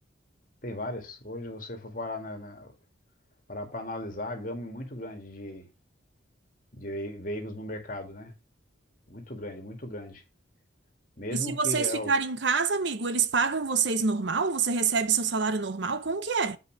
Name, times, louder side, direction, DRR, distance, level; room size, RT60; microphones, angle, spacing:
voice 1, 0.6-2.7 3.5-5.7 6.7-8.3 9.1-10.2 11.2-12.1, left 1 dB, 45° left, 2.2 m, -36 dB
voice 2, 11.3-16.6, right 5 dB, 65° right, 0.8 m, -26 dB
8.7 x 5.2 x 4.7 m
head